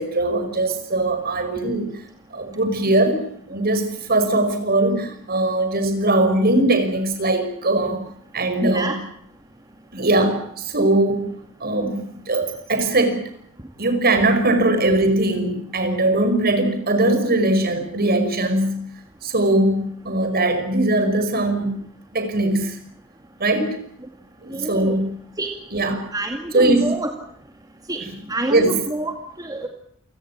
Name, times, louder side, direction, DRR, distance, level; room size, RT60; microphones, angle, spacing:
voice 1, 0.0-2.0 2.3-8.1 8.3-9.0 9.9-11.3 11.6-13.2 13.8-18.8 19.2-21.8 22.1-22.8 23.4-23.8 24.4-25.1 25.7-26.1 26.5-26.9 28.5-28.7, right 2 dB, 50° right, 9 dB, 5.4 m, -20 dB
voice 2, 8.6-9.0 24.5-25.0 25.4-25.5 26.1-27.1 27.9-28.0 28.3-29.7, right 1 dB, 20° right, 4 dB, 2.3 m, -26 dB
28.5 x 18.0 x 7.4 m, 0.67 s
head